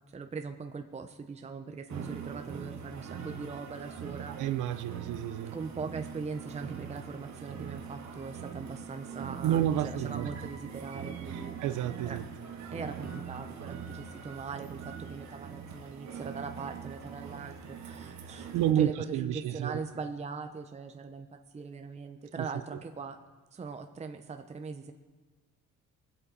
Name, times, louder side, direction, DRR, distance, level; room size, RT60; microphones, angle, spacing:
voice 1, 0.0-4.4 5.4-11.5 12.1-12.2 12.7-23.2 23.5-24.9, right 4 dB, 20° right, 6 dB, 0.6 m, -41 dB
sound 1, 1.9-18.7, right 7 dB, 65° right, 1.3 m, -42 dB
voice 2, 4.4-5.6 9.4-10.3 11.3-12.2 18.5-19.8 22.4-22.5, right 11 dB, 80° right, 12 dB, 0.6 m, -30 dB
19.5 x 7.8 x 4.1 m, 1.3 s
cardioid pair, 90°, 30 cm